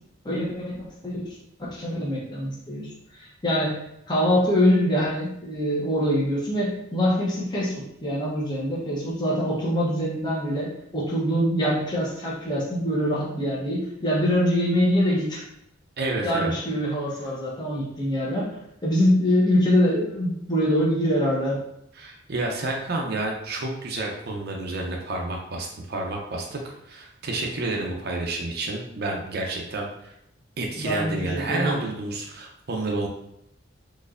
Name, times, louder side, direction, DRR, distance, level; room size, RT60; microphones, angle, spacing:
voice 1, 0.2-1.3 1.6-2.9 3.2-15.4 16.2-18.6 18.8-21.6 30.8-31.9, equal, 20° left, -6 dB, 0.9 m, -24 dB
voice 2, 16.0-16.5 17.2-17.3 21.9-30.1 30.6-33.1, right 2 dB, 50° right, 0 dB, 0.6 m, -30 dB
4.1 x 3.0 x 2.5 m, 0.78 s
head